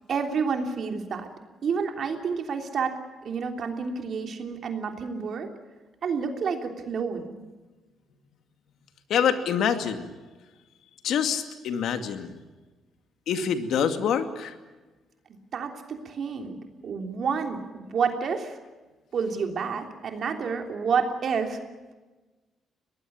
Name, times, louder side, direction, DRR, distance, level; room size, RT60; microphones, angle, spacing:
voice 1, 0.1-1.3 1.6-2.9 3.2-5.5 6.0-7.4 15.5-18.6 19.1-21.6, right 5 dB, 55° right, 4 dB, 3.2 m, -29 dB
voice 2, 9.1-10.1 11.0-12.3 13.3-14.5, left 7 dB, 75° left, 8 dB, 2.3 m, -26 dB
23.0 x 19.0 x 8.8 m, 1.2 s
cardioid pair, 90°, 0 cm